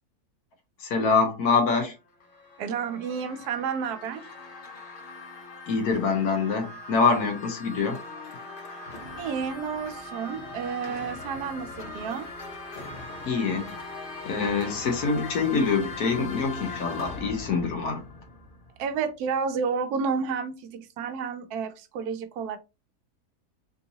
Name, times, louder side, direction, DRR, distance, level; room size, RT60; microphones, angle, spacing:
voice 1, 0.8-1.9 5.7-8.0 13.3-13.7 14.2-18.0, left 4 dB, 80° left, 1.4 m, -25 dB
sound 1, 2.0-18.9, left 3 dB, 45° left, 0.8 m, -40 dB
voice 2, 2.6-4.3 9.2-12.3 18.8-22.6, right 6 dB, 85° right, 1.1 m, -31 dB
3.6 x 2.7 x 2.7 m
omnidirectional pair, 1.6 m